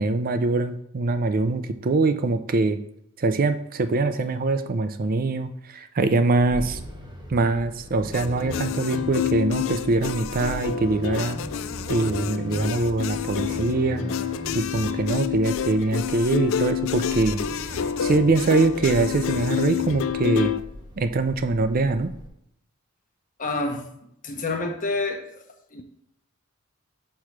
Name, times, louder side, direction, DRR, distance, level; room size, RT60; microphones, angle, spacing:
voice 1, 0.0-2.8 3.2-6.8 7.3-11.4 11.9-14.0 14.5-20.5 21.0-22.1, right 3 dB, 40° right, 10 dB, 0.4 m, -23 dB
sound 1, 6.3-22.3, equal, 20° right, 1.1 m, -39 dB
sound 2, 8.1-20.6, left 9 dB, 65° left, 0.4 m, -28 dB
voice 2, 23.4-23.8 24.2-25.4 25.7-25.8, left 3 dB, 40° left, 2 dB, 1.1 m, -28 dB
6.5 x 3.1 x 5.8 m, 0.74 s
head